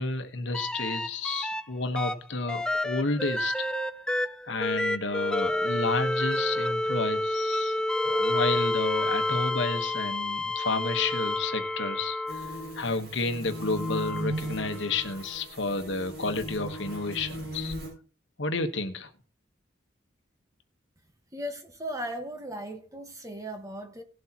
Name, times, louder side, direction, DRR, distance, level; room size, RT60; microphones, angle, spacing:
voice 1, 0.0-3.7 4.4-7.8 8.0-17.7 18.4-19.1, left 3 dB, 70° left, 1.2 m, -31 dB
sound 1, 0.5-1.6 1.9-12.7 13.6-15.1 16.9-17.0, left 1 dB, 5° left, 0.4 m, -29 dB
sound 2, 12.3-17.9, equal, 60° right, 6.0 m, -37 dB
voice 2, 21.3-24.0, equal, 15° right, 1.4 m, -37 dB
18.0 x 7.8 x 2.9 m
head